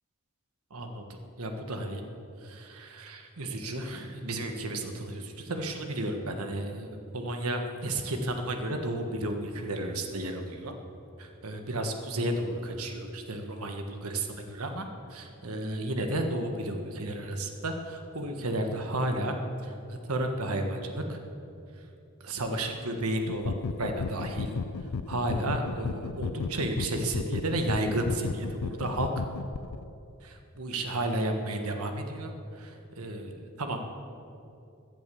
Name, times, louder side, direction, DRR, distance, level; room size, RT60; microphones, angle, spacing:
voice 1, 0.7-2.0 2.4-10.7 11.2-19.3 19.6-21.2 22.2-24.5 25.1-29.1 30.2-33.8, right 1 dB, 90° right, 5 dB, 1.4 m, -32 dB
sound 1, 23.3-29.8, left 5 dB, 90° left, 0.5 m, -35 dB
17.0 x 11.0 x 6.9 m, 2.7 s
head